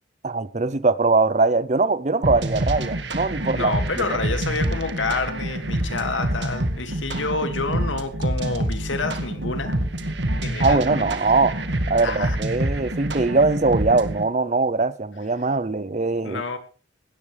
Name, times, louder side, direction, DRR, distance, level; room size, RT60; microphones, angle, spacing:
voice 1, 0.2-3.7 4.1-4.2 10.6-11.6 11.9-16.4, right 3 dB, 35° right, 0.6 m, -21 dB
sound 1, 2.2-14.2, right 1 dB, 65° right, 1.9 m, -27 dB
voice 2, 3.5-9.8 10.4-11.2 12.0-12.4 16.2-16.6, left 3 dB, 85° left, 2.3 m, -28 dB
18.0 x 13.5 x 3.4 m
head